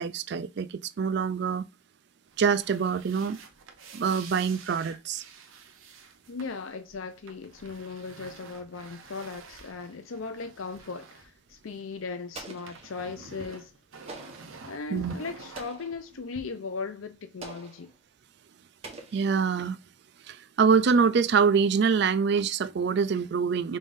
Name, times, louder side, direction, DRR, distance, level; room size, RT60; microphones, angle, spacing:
voice 1, 0.0-1.6 2.4-3.4 3.9-5.2 14.9-15.1 19.1-19.8 20.3-23.8, right 6 dB, 55° right, 0.3 m, -25 dB
sound 1, 2.3-12.1 12.3-16.4, right 4 dB, 80° right, 0.8 m, -49 dB
voice 2, 6.3-13.7 14.6-17.9, left 4 dB, 85° left, 0.6 m, -38 dB
Explosion, 12.3-13.2 14.1-14.6 15.5-16.1 17.4-17.9 18.8-19.7, right 3 dB, 30° right, 1.1 m, -45 dB
5.3 x 3.6 x 2.5 m
head